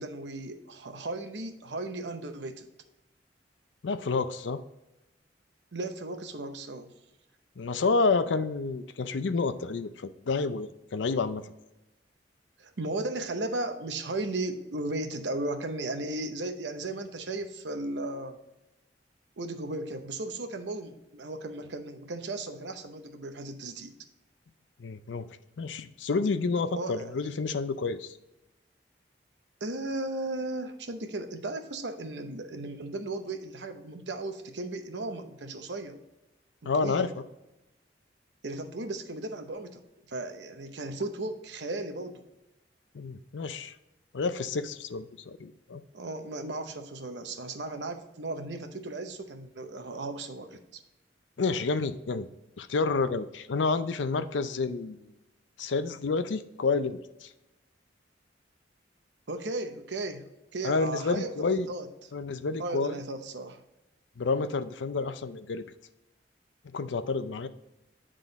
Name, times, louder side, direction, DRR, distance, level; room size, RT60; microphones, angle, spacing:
voice 1, 0.0-2.7 5.7-6.9 12.6-18.4 19.4-23.9 26.8-27.2 29.6-36.0 36.6-37.1 38.4-39.8 40.1-42.2 45.9-50.8 59.3-61.9 62.6-63.6, right 2 dB, 75° right, 7 dB, 0.8 m, -36 dB
voice 2, 3.8-4.6 7.6-11.5 24.8-25.3 25.6-28.1 36.7-37.1 42.9-43.7 44.1-45.8 51.4-52.3 52.6-55.1 55.6-57.3 60.6-61.7 62.1-62.9 64.2-65.6 66.7-67.5, left 4 dB, 85° left, 12 dB, 0.5 m, -29 dB
9.4 x 3.8 x 3.9 m, 0.96 s
head